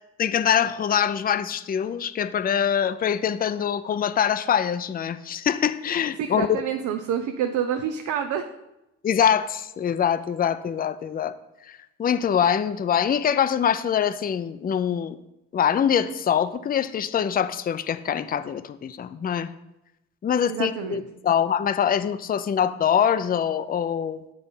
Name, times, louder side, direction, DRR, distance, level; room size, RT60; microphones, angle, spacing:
voice 1, 0.2-6.5 9.0-11.3 12.0-15.2 15.5-19.5 20.2-24.2, left 8 dB, 30° left, 13 dB, 0.4 m, -24 dB
voice 2, 6.2-8.5 20.5-21.1, right 8 dB, 80° right, 8 dB, 0.7 m, -28 dB
9.1 x 4.1 x 5.5 m, 0.93 s
cardioid pair, 90°, 30 cm